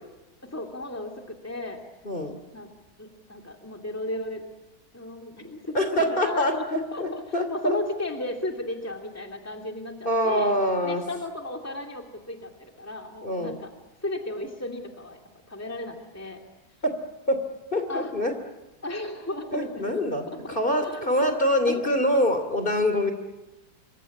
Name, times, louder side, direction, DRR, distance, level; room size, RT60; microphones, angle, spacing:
voice 1, 0.4-1.8 2.5-2.7 3.0-4.5 4.9-7.2 7.5-10.6 10.8-13.7 14.0-15.2 15.5-16.4 17.9-18.1 18.8-20.0 20.8-21.9, left 2 dB, 10° left, 2 dB, 2.9 m, -35 dB
voice 2, 2.0-2.4 5.7-7.8 10.0-11.0 13.2-13.6 17.3-17.4 17.7-18.3 19.5-23.1, left 1 dB, 35° left, 7 dB, 3.1 m, -25 dB
27.5 x 25.0 x 8.6 m, 1.0 s
omnidirectional pair, 1.6 m